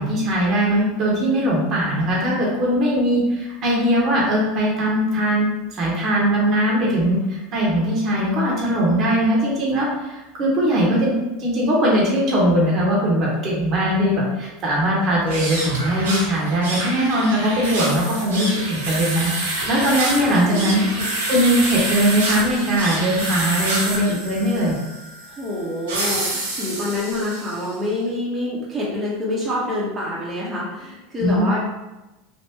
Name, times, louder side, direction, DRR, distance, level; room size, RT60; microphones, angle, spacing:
voice 1, 0.0-11.1 11.4-20.8 21.3-24.8 31.2-31.5, equal, 45° right, -4 dB, 1.2 m, -20 dB
sound 1, 15.2-27.7, right 2 dB, 85° right, 1.1 m, -27 dB
voice 2, 20.2-21.2 25.4-31.6, left 1 dB, 20° right, -7 dB, 1.1 m, -27 dB
3.4 x 2.5 x 2.9 m, 1.0 s
hypercardioid pair, 90°, 0 cm